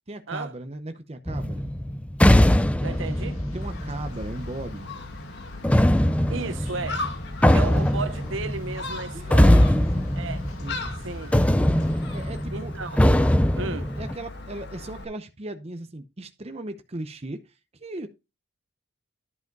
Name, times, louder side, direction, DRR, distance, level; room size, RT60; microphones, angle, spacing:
voice 1, 0.1-1.7 3.5-4.9 7.4-7.9 9.1-10.1 10.6-10.9 12.1-12.7 14.0-18.1, right 1 dB, 30° right, 0.8 m, -37 dB
sound 1, 1.3-4.7 5.6-11.0 11.3-14.1, left 1 dB, 5° left, 0.4 m, -21 dB
sound 2, 2.8-12.5, left 2 dB, 85° left, 1.7 m, -47 dB
voice 2, 2.8-3.4 6.3-7.0 7.5-9.6 10.2-10.4 11.0-11.3 12.5-13.0 13.6-13.9, right 4 dB, 60° right, 0.9 m, -34 dB
Gull seagull, 3.6-15.0, left 2 dB, 55° left, 1.6 m, -38 dB
10.5 x 4.9 x 5.3 m
head